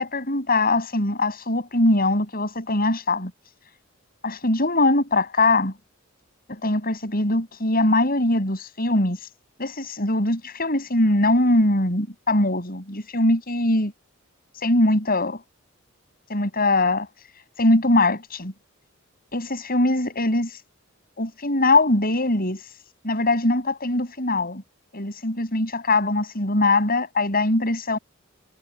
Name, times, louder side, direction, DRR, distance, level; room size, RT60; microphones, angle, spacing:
voice 1, 0.0-3.3 4.2-5.7 6.5-9.2 9.6-13.9 14.6-15.4 16.3-17.1 17.6-18.5 19.3-20.5 21.2-22.6 23.0-24.6 24.9-28.0, left 2 dB, 45° left, 7.9 m, -21 dB
head